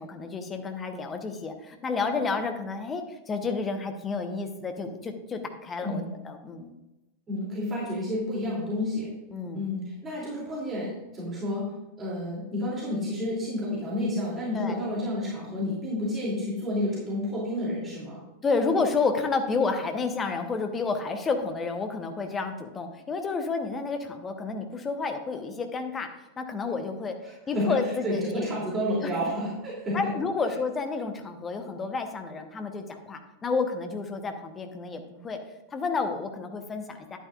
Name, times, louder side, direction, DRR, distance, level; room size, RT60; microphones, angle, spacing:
voice 1, 0.0-6.7 9.3-9.7 14.5-14.8 18.4-26.1 26.4-27.1 27.5-28.5 29.0-29.1 29.9-35.4 35.7-37.2, left 4 dB, 20° left, 6 dB, 1.0 m, -30 dB
voice 2, 7.3-9.1 9.5-11.6 12.0-18.2 27.5-27.6 28.0-30.1, left 1 dB, 20° right, -6 dB, 3.0 m, -30 dB
11.0 x 9.1 x 2.5 m, 1.0 s
figure-of-eight pair, 90°, 0 cm